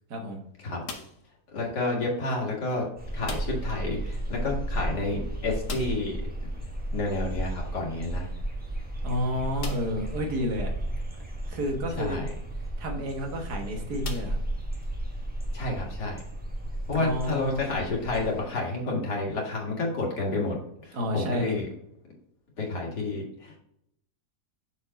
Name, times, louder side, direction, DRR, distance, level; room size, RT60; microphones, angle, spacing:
sound 1, 0.8-1.4 3.2-3.8 4.0-4.1 4.5-4.6 5.6-6.2 8.0-8.1 8.7-8.8 9.6-10.1 10.8-10.9 12.9-13.1 14.0-14.9, left 4 dB, 55° left, 1.2 m, -41 dB
voice 1, 1.5-2.9 3.1-6.2 6.9-8.3 12.0-12.3 15.5-16.2 16.9-20.6 20.8-21.7 22.6-23.6, left 2 dB, 85° left, -2 dB, 2.5 m, -30 dB
sound 2, 3.0-18.4, right 1 dB, 5° right, 0.9 m, -34 dB
voice 2, 9.0-10.7 11.4-12.2 12.8-14.4 16.9-17.9 20.9-21.6, equal, 75° right, 2 dB, 1.9 m, -30 dB
6.6 x 4.6 x 4.0 m, 0.74 s
omnidirectional pair, 1.7 m